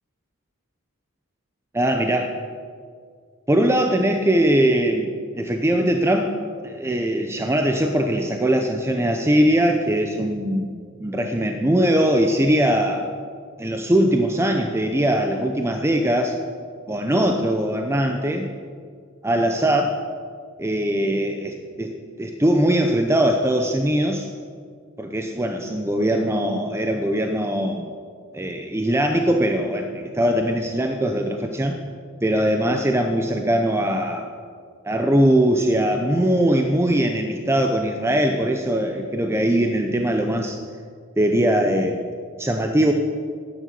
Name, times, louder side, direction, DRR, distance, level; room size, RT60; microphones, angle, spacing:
voice 1, 1.7-2.4 3.5-6.4 6.6-13.1 13.6-16.4 16.9-18.5 19.2-20.0 20.6-21.9 22.2-24.3 25.0-27.9 28.3-31.8 32.2-34.3 34.8-40.6 41.2-42.0 42.4-42.9, right 1 dB, 10° right, 4 dB, 0.7 m, -21 dB
12.5 x 9.3 x 6.8 m, 2.1 s
head